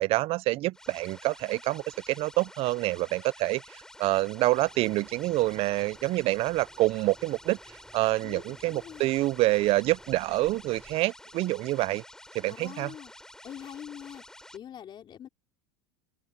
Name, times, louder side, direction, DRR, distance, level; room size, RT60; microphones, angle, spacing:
voice 1, 0.0-7.6 7.9-12.0 12.3-12.9, right 18 dB, 45° right, 0.4 m, -27 dB
sound 1, 0.7-14.6, left 1 dB, 5° left, 4.6 m, -50 dB
sound 2, 4.5-11.0, right 3 dB, 15° right, 3.9 m, -57 dB
voice 2, 8.2-9.2 12.5-13.1 13.4-14.2 14.5-15.3, left 9 dB, 35° left, 3.6 m, -44 dB
open air
supercardioid pair, 115°, 14 cm